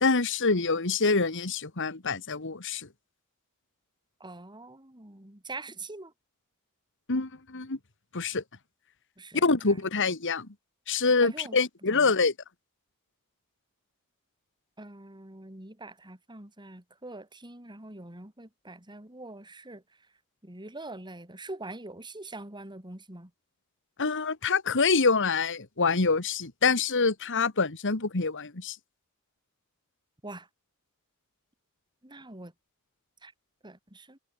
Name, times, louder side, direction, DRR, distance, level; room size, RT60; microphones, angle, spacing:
voice 1, 0.0-2.9 7.1-7.8 8.1-8.4 9.3-10.5 10.9-12.3 24.0-28.8, left 4 dB, 60° left, 1.9 m, -26 dB
voice 2, 4.2-6.1 9.2-9.8 11.2-11.6 11.9-12.1 14.8-19.8 20.4-23.3 30.2-30.5 32.0-32.5 33.2-33.3 33.6-34.2, right 2 dB, 20° right, 3.4 m, -44 dB
head